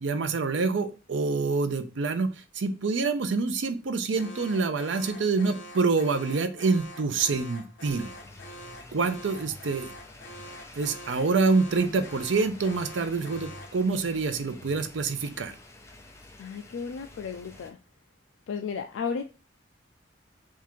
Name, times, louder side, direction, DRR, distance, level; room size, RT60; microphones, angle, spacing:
voice 1, 0.0-8.1 8.9-9.9 10.8-15.6, right 4 dB, 75° right, 9 dB, 0.5 m, -26 dB
Alarm, 4.2-13.8, equal, 70° left, 0.8 m, -45 dB
sound 1, 8.0-17.7, left 2 dB, 15° left, 0.5 m, -49 dB
voice 2, 16.4-17.8 18.5-19.3, left 6 dB, 90° left, 5 dB, 0.4 m, -34 dB
3.6 x 2.4 x 4.5 m, 0.34 s
head